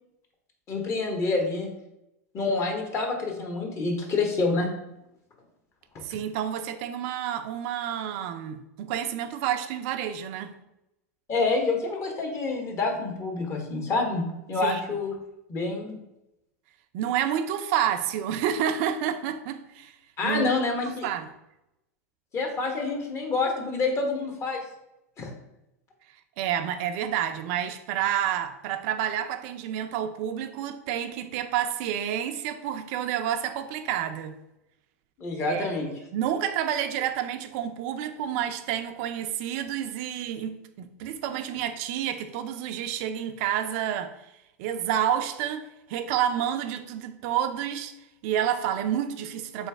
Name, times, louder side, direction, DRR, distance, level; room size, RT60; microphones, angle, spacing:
voice 1, 0.7-1.7 2.3-4.7 11.3-14.2 14.5-15.1 15.5-16.0 20.2-21.1 22.3-24.6 25.2-25.3 35.2-35.9, left 3 dB, 35° left, 1.1 m, -27 dB
voice 2, 6.0-10.5 14.6-14.8 16.9-20.0 20.2-20.6 21.0-21.3 26.4-34.4 35.5-44.3 44.6-47.9 48.2-49.7, right 10 dB, 60° right, 0.4 m, -29 dB
3.4 x 3.1 x 3.4 m
hypercardioid pair, 100°, 8 cm